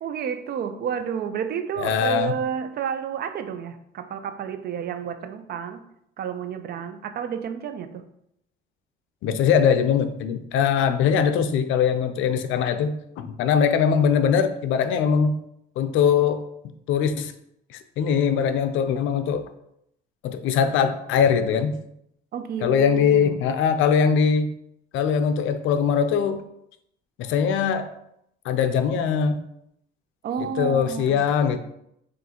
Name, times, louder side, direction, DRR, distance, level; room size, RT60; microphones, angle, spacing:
voice 1, 0.0-5.8 6.2-8.0 22.3-23.4 30.2-31.3, right 7 dB, 50° right, 9 dB, 0.4 m, -30 dB
voice 2, 1.8-2.3 9.2-15.4 15.8-16.4 16.9-17.3 17.7-19.5 20.2-21.8 22.6-24.5 24.9-26.4 27.2-27.9 28.4-29.4 30.4-31.6, left 7 dB, 75° left, 9 dB, 0.5 m, -21 dB
6.2 x 2.5 x 2.8 m, 0.76 s
cardioid pair, 125°, 21 cm